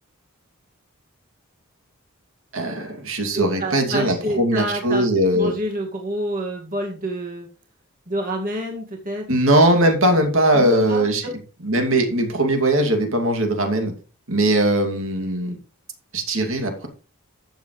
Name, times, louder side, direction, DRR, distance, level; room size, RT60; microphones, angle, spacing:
voice 1, 2.5-5.5 9.3-11.3 11.6-13.9 14.3-15.6 16.1-16.9, right 1 dB, 65° right, 3 dB, 2.6 m, -20 dB
voice 2, 3.3-5.0 5.3-7.5 8.1-9.3 10.5-11.3, right 1 dB, 40° right, 0 dB, 2.2 m, -28 dB
14.0 x 7.4 x 3.3 m, 0.36 s
head